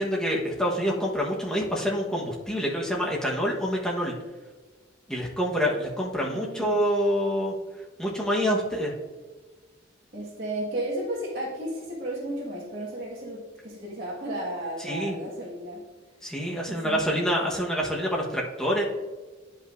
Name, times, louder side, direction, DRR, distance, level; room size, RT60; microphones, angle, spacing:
voice 1, 0.0-4.1 5.1-7.5 8.0-8.9 14.8-15.1 16.2-18.8, equal, 5° left, -4 dB, 1.2 m, -27 dB
voice 2, 6.2-6.9 10.1-15.8 16.4-17.4, right 1 dB, 50° right, -7 dB, 1.7 m, -34 dB
10.5 x 5.4 x 2.6 m, 1.3 s
head